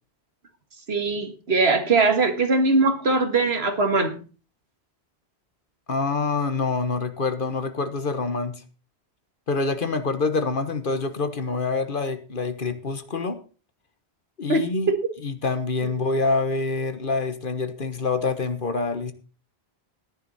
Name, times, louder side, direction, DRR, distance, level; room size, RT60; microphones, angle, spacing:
voice 1, 0.9-4.2 14.5-15.1, right 3 dB, 75° right, 1.9 m, -21 dB
voice 2, 5.9-8.6 9.5-13.4 14.4-14.9 15.2-19.1, left 4 dB, 55° left, 1.4 m, -26 dB
13.5 x 11.0 x 4.2 m
omnidirectional pair, 1.1 m